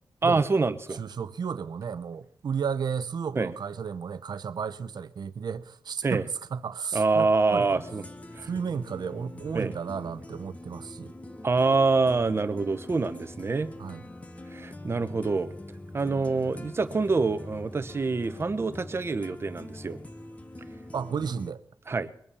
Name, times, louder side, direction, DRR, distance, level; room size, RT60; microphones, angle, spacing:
voice 1, 0.2-1.0 3.3-3.5 6.0-6.2 6.9-8.0 8.4-8.5 9.5-9.8 11.4-13.7 14.5-15.5 15.9-20.0 21.9-22.1, right 3 dB, 35° right, 1.0 m, -26 dB
voice 2, 0.9-7.8 8.4-11.1 13.8-14.0 20.9-21.6, right 6 dB, 65° right, 0.9 m, -33 dB
sound 1, 7.6-21.5, left 1 dB, 20° left, 1.0 m, -44 dB
22.0 x 8.5 x 7.0 m
wide cardioid pair, 175°, 8 cm